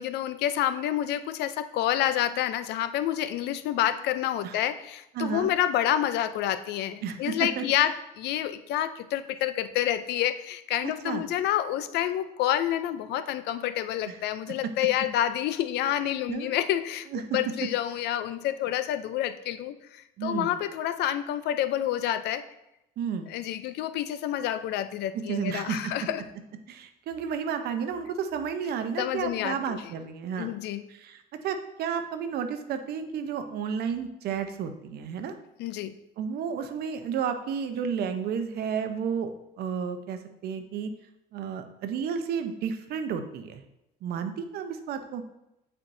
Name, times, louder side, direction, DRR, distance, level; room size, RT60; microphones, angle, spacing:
voice 1, 0.0-17.1 17.3-22.4 23.3-26.2 29.0-29.8 30.4-30.8 35.6-35.9, left 11 dB, 80° left, 12 dB, 0.5 m, -28 dB
voice 2, 5.1-5.5 7.0-7.8 10.8-11.2 14.1-14.2 16.3-16.6 17.1-17.4 20.2-20.5 23.0-23.3 25.1-25.9 26.7-30.5 30.9-35.3 36.2-39.3 39.6-40.9 41.3-43.6 44.0-45.2, right 7 dB, 70° right, 8 dB, 0.7 m, -32 dB
8.8 x 4.4 x 2.6 m, 0.88 s
cardioid pair, 110°, 17 cm